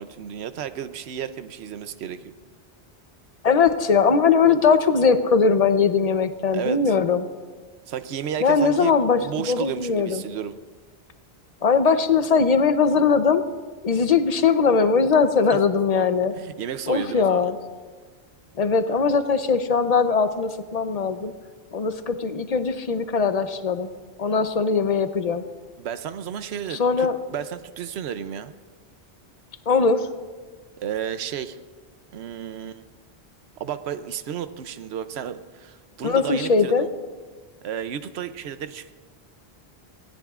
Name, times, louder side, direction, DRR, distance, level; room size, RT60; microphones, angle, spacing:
voice 1, 0.0-2.3 6.5-7.0 7.9-10.6 16.3-17.5 25.8-28.5 30.8-31.6 32.1-32.8 33.6-36.9 37.6-38.9, right 9 dB, 80° right, 12 dB, 0.9 m, -32 dB
voice 2, 3.4-7.3 8.4-9.2 9.5-10.2 11.6-13.4 13.8-16.3 16.9-17.6 18.6-21.3 21.7-23.9 24.2-25.4 26.7-27.2 29.7-30.1 36.0-36.9, left 5 dB, 40° left, 10 dB, 0.8 m, -20 dB
25.0 x 17.0 x 2.4 m, 1.4 s
omnidirectional pair, 1.1 m